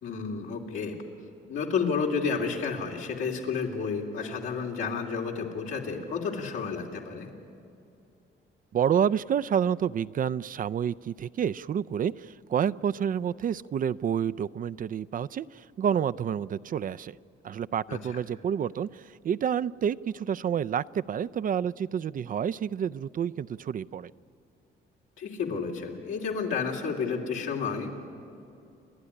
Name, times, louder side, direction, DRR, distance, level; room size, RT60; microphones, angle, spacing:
voice 1, 0.0-1.0 1.5-7.3 17.9-18.0 25.2-27.9, left 5 dB, 85° left, 0 dB, 3.0 m, -31 dB
voice 2, 8.7-17.2 17.4-24.1, right 8 dB, 45° right, 15 dB, 0.4 m, -29 dB
29.5 x 11.5 x 9.8 m, 2.6 s
cardioid pair, 90°, 20 cm